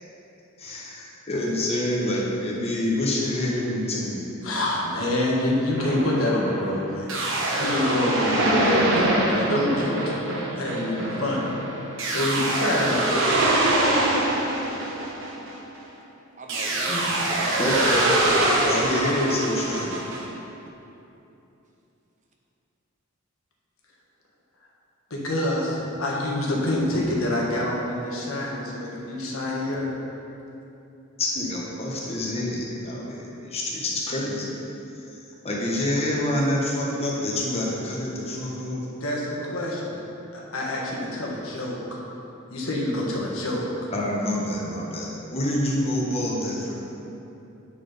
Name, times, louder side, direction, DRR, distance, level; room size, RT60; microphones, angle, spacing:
voice 1, 0.6-4.2 16.9-17.0 17.6-18.1 18.6-20.0 31.2-34.5 35.4-38.9 43.9-46.7, left 1 dB, 30° left, -4 dB, 1.3 m, -27 dB
voice 2, 4.4-7.1 7.5-10.0 10.5-11.4 12.1-13.0 25.1-29.9 39.0-40.0 40.3-41.8 42.5-43.7, left 1 dB, 90° left, -3 dB, 1.4 m, -26 dB
sound 1, 5.8-15.9 16.5-20.2, right 1 dB, 65° right, 1.1 m, -24 dB
voice 3, 16.3-18.5, right 1 dB, 35° right, 0 dB, 0.8 m, -39 dB
8.6 x 4.2 x 5.1 m, 2.9 s
head